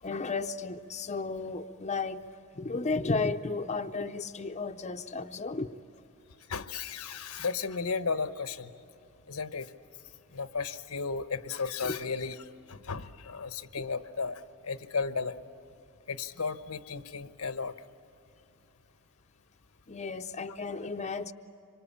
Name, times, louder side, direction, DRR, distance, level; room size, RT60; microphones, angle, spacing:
voice 1, 0.0-2.2 2.6-5.7 11.8-12.0 19.9-21.3, left 3 dB, 30° left, 6 dB, 0.6 m, -33 dB
voice 2, 6.5-8.7 9.3-9.7 10.3-12.4 12.7-15.4 16.1-17.7, left 5 dB, 85° left, 10 dB, 1.0 m, -34 dB
26.0 x 24.5 x 8.6 m, 2.9 s
head